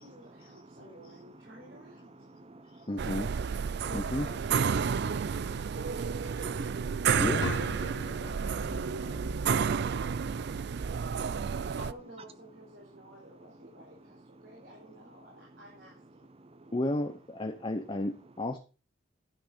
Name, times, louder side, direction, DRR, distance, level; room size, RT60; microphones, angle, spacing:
voice 1, 0.0-2.3 3.9-4.4 8.1-9.2 11.7-16.2, equal, 85° right, -4 dB, 4.5 m, -52 dB
voice 2, 2.2-3.1 3.7-3.9 6.7-7.0 7.9-8.2 9.6-11.7 16.4-16.7, right 2 dB, 35° right, 13 dB, 0.9 m, -54 dB
voice 3, 2.9-3.4 3.9-4.3 7.2-7.5 16.7-18.6, left 1 dB, 30° left, 6 dB, 0.9 m, -32 dB
sound 1, 3.0-11.9, right 6 dB, 60° right, 0.4 m, -31 dB
sound 2, 7.4-11.4, left 2 dB, 85° left, 1.1 m, -42 dB
12.0 x 6.0 x 5.2 m, 0.34 s
head